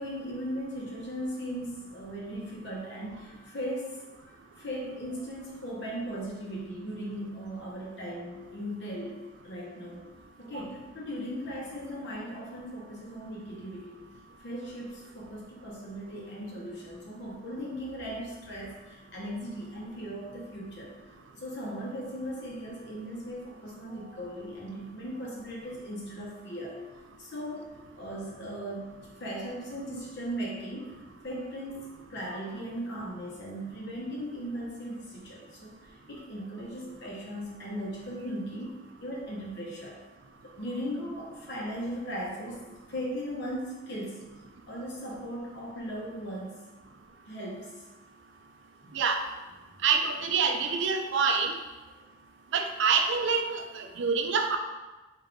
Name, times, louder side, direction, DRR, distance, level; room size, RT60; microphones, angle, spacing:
voice 1, 0.0-10.0 10.4-14.0 14.4-20.9 21.3-26.8 27.2-35.7 36.1-40.0 40.4-42.6 42.9-44.2 44.7-46.6 47.3-47.8 48.8-49.0, equal, 60° left, -3 dB, 1.0 m, -38 dB
voice 2, 49.8-51.5 52.5-54.6, right 5 dB, 65° right, 5 dB, 0.4 m, -26 dB
3.9 x 2.6 x 3.4 m, 1.2 s
head